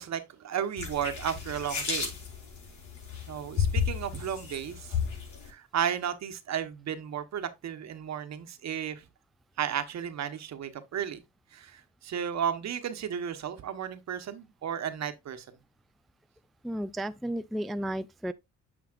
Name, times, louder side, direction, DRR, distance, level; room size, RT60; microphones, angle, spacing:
voice 1, 0.0-2.1 3.3-4.9 5.5-9.0 9.6-11.2 11.5-15.5, right 8 dB, 60° right, 1.2 m, -33 dB
sound 1, 0.8-5.5, left 7 dB, 75° left, 5.0 m, -33 dB
voice 2, 16.6-18.3, right 1 dB, ahead, 0.3 m, -33 dB
9.7 x 5.8 x 2.5 m
cardioid pair, 90°, 30 cm